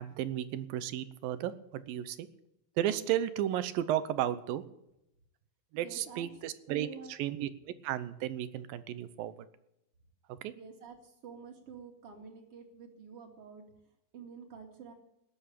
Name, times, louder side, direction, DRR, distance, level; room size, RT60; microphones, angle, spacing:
voice 1, 0.0-2.3 2.8-4.6 5.7-6.9 7.2-9.3 10.4-10.5, right 12 dB, 80° right, 13 dB, 2.6 m, -33 dB
voice 2, 5.7-6.3 6.7-7.1 10.5-13.6 14.1-14.9, right 6 dB, 45° right, 3 dB, 3.0 m, -48 dB
19.5 x 8.0 x 8.6 m, 0.82 s
omnidirectional pair, 4.2 m